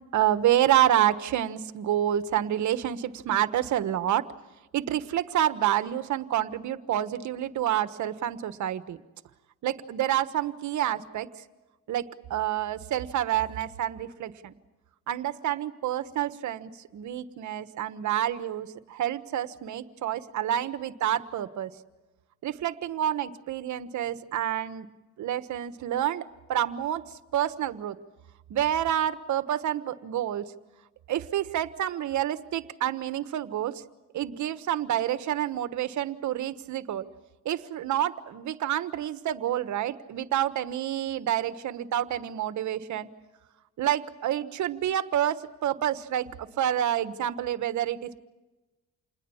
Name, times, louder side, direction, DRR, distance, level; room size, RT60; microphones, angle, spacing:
voice 1, 0.1-4.3 4.7-9.0 9.6-11.3 11.9-12.0 12.3-14.5 15.1-21.7 22.4-24.9 25.2-26.2 26.5-27.0 27.3-28.0 28.5-30.4 31.1-33.8 34.1-37.1 37.4-43.1 43.8-48.2, right 11 dB, 75° right, 12 dB, 1.4 m, -28 dB
28.5 x 20.5 x 7.2 m, 1.1 s
cardioid pair, 90°, 30 cm